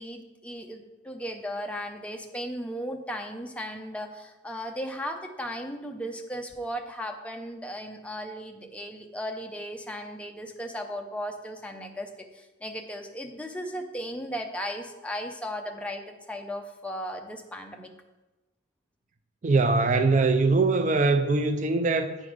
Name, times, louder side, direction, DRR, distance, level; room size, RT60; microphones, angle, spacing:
voice 1, 0.0-17.9, equal, 5° left, 0.6 m, -36 dB
voice 2, 19.4-22.2, right 3 dB, 40° right, 0.4 m, -22 dB
9.6 x 5.2 x 5.0 m
head